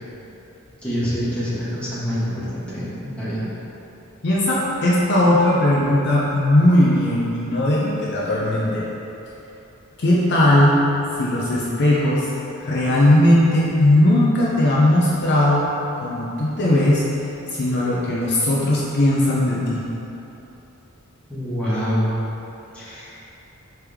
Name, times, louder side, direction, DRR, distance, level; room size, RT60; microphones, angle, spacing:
voice 1, 0.8-3.4 21.3-22.1 22.7-23.2, equal, 5° left, -11 dB, 1.1 m, -26 dB
voice 2, 4.2-8.9 10.0-10.8 11.2-12.3 12.6-15.7 16.0-17.0 17.5-19.8, left 1 dB, 50° left, -5 dB, 0.5 m, -18 dB
4.6 x 3.3 x 3.5 m, 3.0 s
head